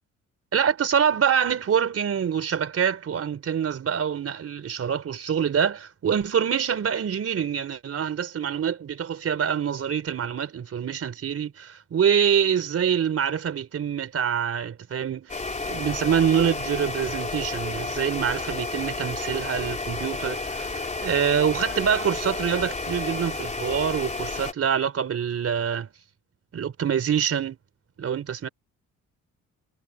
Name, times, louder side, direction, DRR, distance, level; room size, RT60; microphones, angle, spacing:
voice 1, 0.5-15.3 15.6-25.9 26.5-27.6 28.0-28.5, right 8 dB, 50° right, 4.2 m, -25 dB
sound 1, 15.3-24.5, left 3 dB, 25° left, 3.5 m, -31 dB
cardioid pair, 90°, 30 cm